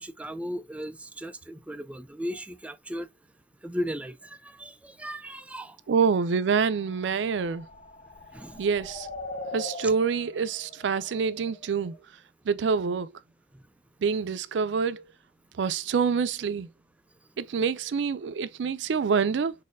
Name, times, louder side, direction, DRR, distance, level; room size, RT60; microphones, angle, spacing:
voice 1, 0.0-3.1 3.6-5.8 8.3-8.6 9.8-9.9 13.5-13.6, equal, 10° right, 0.3 m, -36 dB
voice 2, 5.9-7.7 8.6-9.1 9.5-11.9 12.5-13.1 14.0-15.0 15.6-16.7 17.4-19.5, right 5 dB, 85° right, 0.4 m, -26 dB
sound 1, 6.2-12.0, left 2 dB, 45° left, 0.8 m, -42 dB
4.1 x 2.6 x 2.5 m
head